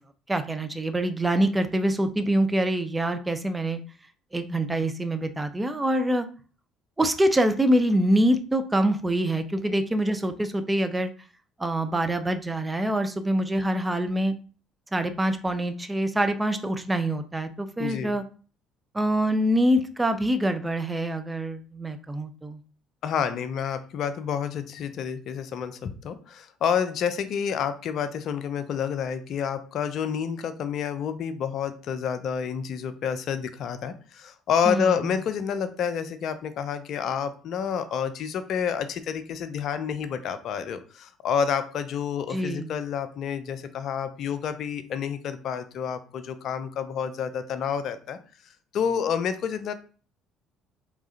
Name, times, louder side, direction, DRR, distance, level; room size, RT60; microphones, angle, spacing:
voice 1, 0.3-3.8 4.3-6.3 7.0-11.1 11.6-14.3 14.9-18.2 18.9-22.6 34.7-35.0 42.3-42.8, right 1 dB, 15° right, 9 dB, 0.7 m, -25 dB
voice 2, 17.8-18.2 23.0-48.2 48.7-49.7, left 7 dB, 55° left, 11 dB, 0.6 m, -29 dB
4.7 x 3.7 x 2.8 m, 0.39 s
figure-of-eight pair, 55°, 0 cm